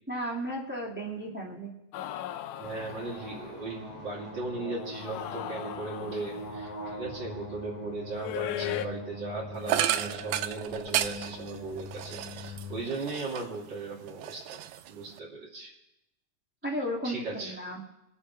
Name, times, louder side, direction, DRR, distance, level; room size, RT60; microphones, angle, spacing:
voice 1, 0.1-1.7 16.6-17.8, equal, 5° right, -3 dB, 1.5 m, -34 dB
sound 1, 1.9-3.6 4.9-6.6 8.2-8.9, left 12 dB, 80° left, 2.1 m, -37 dB
sound 2, 2.6-12.8, left 1 dB, 50° left, 3.9 m, -42 dB
voice 2, 2.6-15.7 17.0-17.6, right 3 dB, 35° right, -4 dB, 3.2 m, -38 dB
sound 3, 9.7-13.6 14.0-15.2, right 12 dB, 80° right, 1.6 m, -32 dB
25.0 x 9.8 x 3.2 m, 0.89 s
omnidirectional pair, 3.6 m